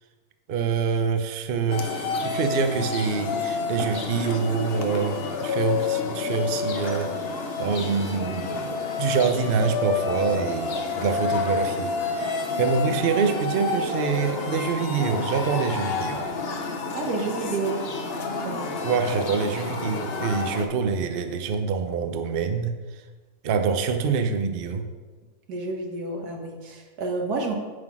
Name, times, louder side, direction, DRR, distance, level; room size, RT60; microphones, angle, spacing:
voice 1, 0.5-7.3 7.6-8.7 9.0-16.2 18.8-22.7 23.4-24.8, right 5 dB, 55° right, 6 dB, 0.6 m, -26 dB
sound 1, 1.7-20.7, left 4 dB, 50° left, 0.9 m, -29 dB
voice 2, 16.9-17.8 18.4-18.7 25.5-27.5, right 3 dB, 80° right, 2 dB, 1.7 m, -29 dB
9.7 x 3.9 x 6.0 m, 1.4 s
omnidirectional pair, 1.6 m